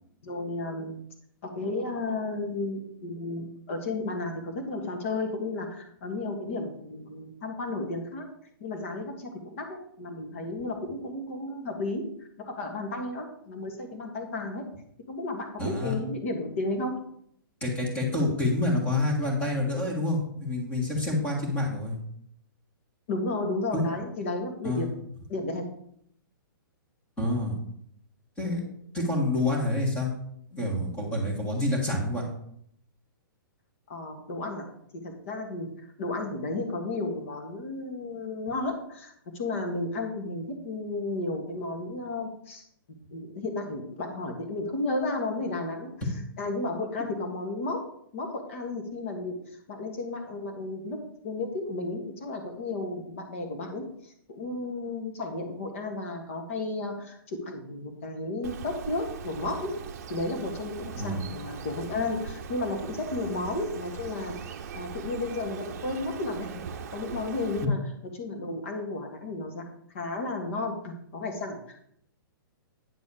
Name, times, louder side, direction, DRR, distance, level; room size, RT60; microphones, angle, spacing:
voice 1, 0.2-1.0 1.6-8.3 8.6-12.0 12.6-14.6 15.1-17.0 23.1-25.0 25.3-25.7 33.9-34.7 35.0-35.7 36.0-42.6 43.1-45.9 46.4-47.8 48.1-49.4 49.7-51.0 51.2-59.7 60.1-64.3 64.7-66.5 66.9-67.8 68.1-69.6 69.9-71.9, left 2 dB, 35° left, 3 dB, 1.7 m, -33 dB
voice 2, 15.6-16.0 17.6-21.9 23.7-23.8 24.6-24.9 27.2-27.5 28.4-28.6 28.9-30.1 30.5-32.2 60.9-61.3, left 1 dB, 10° left, -1 dB, 1.6 m, -27 dB
Bird, 58.4-67.7, right 6 dB, 45° right, 0.8 m, -40 dB
9.4 x 4.1 x 6.9 m, 0.69 s
hypercardioid pair, 180°, 12 cm